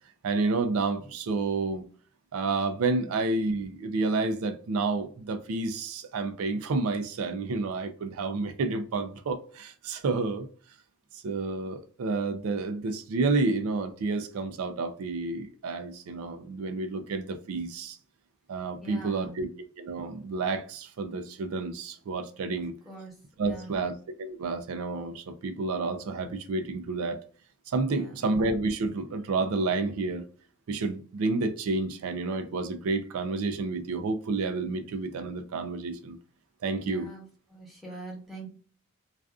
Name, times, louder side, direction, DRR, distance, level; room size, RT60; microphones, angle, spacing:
voice 1, 0.2-1.8 2.3-10.5 11.1-18.0 18.5-19.5 19.8-22.7 23.4-27.2 27.7-30.2 30.7-36.2 36.6-37.1, right 3 dB, 75° right, 0.4 m, -30 dB
voice 2, 18.8-19.5 22.9-23.1 23.4-23.9 27.9-28.3 36.8-37.2 37.5-38.5, right 2 dB, ahead, 0.8 m, -43 dB
2.4 x 2.4 x 2.3 m
head